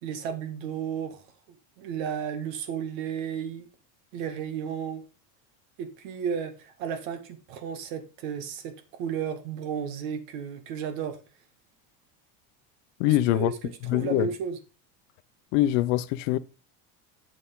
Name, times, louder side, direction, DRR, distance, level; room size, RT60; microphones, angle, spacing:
voice 1, 0.0-1.2 1.8-3.7 4.1-5.0 5.8-11.2 13.0-14.6, right 7 dB, 85° right, 1.8 m, -33 dB
voice 2, 13.0-13.5 13.8-14.3 15.5-16.4, left 15 dB, 70° left, 0.7 m, -23 dB
8.5 x 7.3 x 3.7 m
cardioid pair, 175°, 39 cm